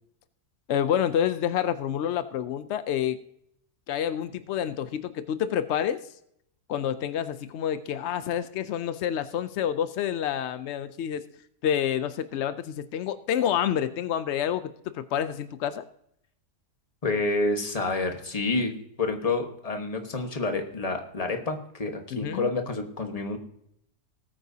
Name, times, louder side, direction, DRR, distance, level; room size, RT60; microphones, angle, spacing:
voice 1, 0.7-3.2 3.9-6.1 6.7-11.2 11.6-15.8 22.1-22.5, left 9 dB, 75° left, 12 dB, 0.6 m, -28 dB
voice 2, 17.0-18.7 19.0-23.4, left 3 dB, 25° left, 4 dB, 1.2 m, -28 dB
19.0 x 8.8 x 2.8 m, 0.73 s
omnidirectional pair, 1.8 m